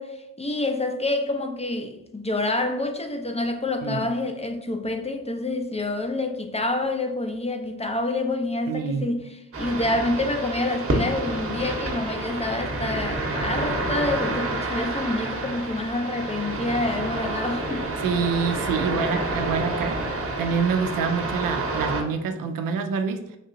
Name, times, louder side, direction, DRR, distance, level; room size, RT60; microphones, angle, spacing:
voice 1, 0.0-17.9, left 2 dB, 20° left, 0.5 m, -27 dB
voice 2, 8.7-9.1 18.0-20.0 20.4-23.2, right 5 dB, 70° right, 0.5 m, -26 dB
sound 1, 9.5-22.0, right 2 dB, 40° right, 0.9 m, -29 dB
3.3 x 2.7 x 2.6 m
supercardioid pair, 40°, 34 cm